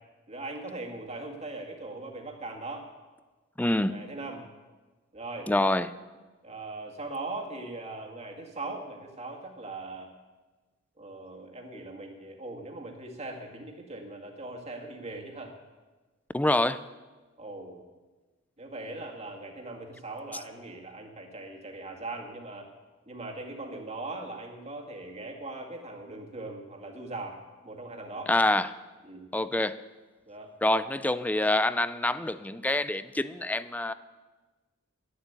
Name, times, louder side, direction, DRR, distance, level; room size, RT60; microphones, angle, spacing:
voice 1, 0.3-2.9 3.8-4.5 5.1-5.5 6.4-10.1 11.0-15.6 17.4-17.9 18.6-22.7 23.1-28.3 29.0-29.3 30.3-30.5, right 2 dB, 35° right, 1 dB, 2.2 m, -40 dB
voice 2, 3.6-4.0 5.5-5.9 16.3-16.8 28.3-28.7 29.3-29.8 30.6-33.9, left 1 dB, 10° left, 15 dB, 0.4 m, -26 dB
11.5 x 11.0 x 8.2 m, 1.3 s
head